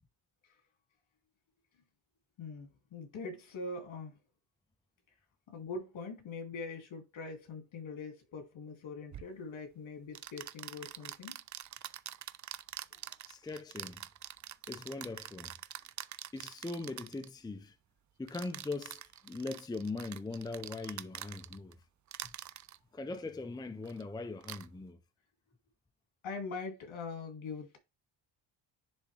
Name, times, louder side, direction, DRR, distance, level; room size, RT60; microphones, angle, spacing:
voice 1, 2.4-4.2 5.5-11.4 12.9-13.1 26.2-27.8, left 4 dB, 75° left, 2.5 m, -43 dB
sound 1, 9.1-9.3 10.2-17.3 18.3-21.7 22.1-22.8 23.8-24.0 24.4-24.7, right 11 dB, 40° right, 0.4 m, -45 dB
voice 2, 13.3-14.0 14.7-15.5 16.3-17.8 18.2-21.8 22.2-22.3 22.9-25.0, left 3 dB, 10° left, 0.6 m, -41 dB
10.5 x 3.6 x 3.3 m
cardioid pair, 110°, 47 cm